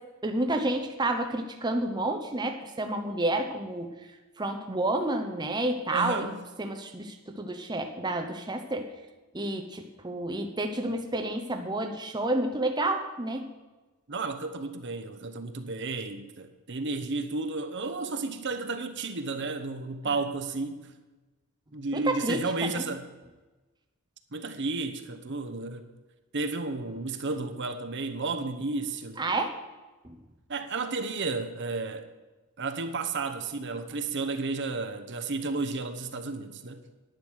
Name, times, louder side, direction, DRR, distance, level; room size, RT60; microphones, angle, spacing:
voice 1, 0.2-4.0 4.4-6.3 6.6-8.9 9.3-13.5 21.9-22.8 29.2-29.6 30.0-30.1, right 1 dB, 20° right, 0.8 m, -30 dB
voice 2, 5.9-6.4 14.1-20.9 21.7-23.1 24.3-25.9 26.3-29.2 30.5-32.1 32.6-36.8, right 3 dB, 55° right, 0.9 m, -32 dB
10.5 x 9.7 x 6.4 m
head